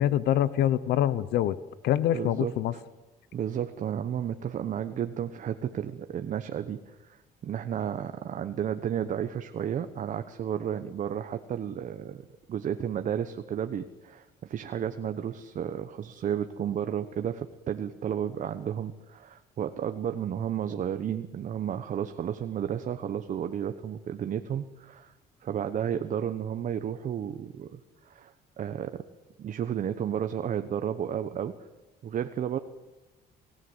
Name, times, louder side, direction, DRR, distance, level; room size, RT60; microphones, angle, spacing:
voice 1, 0.0-1.5 1.8-2.7, left 11 dB, 75° left, 16 dB, 0.9 m, -25 dB
voice 2, 2.1-2.8 3.3-12.2 12.5-25.1 25.4-27.8 28.0-29.0 29.4-31.6 32.0-32.6, right 9 dB, 50° right, 9 dB, 1.1 m, -32 dB
28.5 x 17.0 x 8.1 m, 1.2 s
cardioid pair, 110°, 17 cm